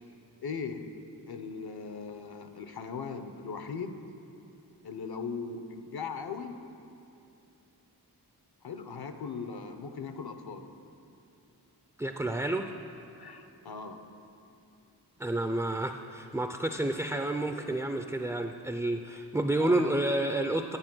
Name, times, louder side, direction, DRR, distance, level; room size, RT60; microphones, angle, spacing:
voice 1, 0.4-0.9 1.3-4.0 4.8-6.6 8.6-10.7 13.2-14.0 19.6-20.0, left 5 dB, 65° left, 8 dB, 0.7 m, -39 dB
voice 2, 12.0-12.7 15.2-20.8, right 1 dB, 5° right, 6 dB, 0.3 m, -30 dB
9.7 x 8.6 x 6.0 m, 2.7 s
wide cardioid pair, 90°, 40 cm